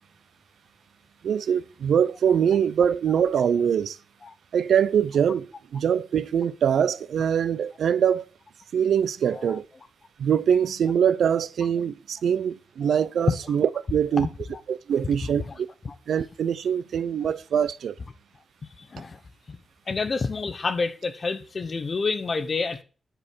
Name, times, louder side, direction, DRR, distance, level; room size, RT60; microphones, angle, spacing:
voice 1, 1.2-4.0 4.5-8.2 8.7-9.6 10.2-14.3 14.7-15.7 16.1-18.0, right 8 dB, 75° right, 0.5 m, -23 dB
voice 2, 9.2-9.6 12.8-12.9 14.2-14.6 15.2-15.5 15.8-15.9 17.2-17.3 18.8-19.2 19.5-19.6 19.9-22.8, left 4 dB, 35° left, 0.9 m, -29 dB
10.0 x 6.6 x 4.5 m
wide cardioid pair, 140°, 0 cm